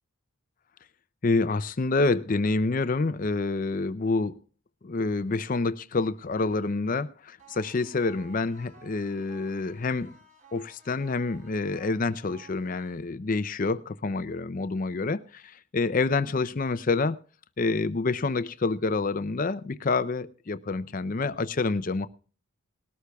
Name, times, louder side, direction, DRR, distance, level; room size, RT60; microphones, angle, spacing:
voice 1, 1.2-4.4 4.8-10.1 10.5-17.2 17.6-22.1, left 3 dB, 40° left, 14 dB, 0.5 m, -27 dB
sound 1, 7.4-13.4, right 3 dB, 35° right, 4.1 m, -55 dB
20.5 x 13.0 x 2.3 m, 0.39 s
head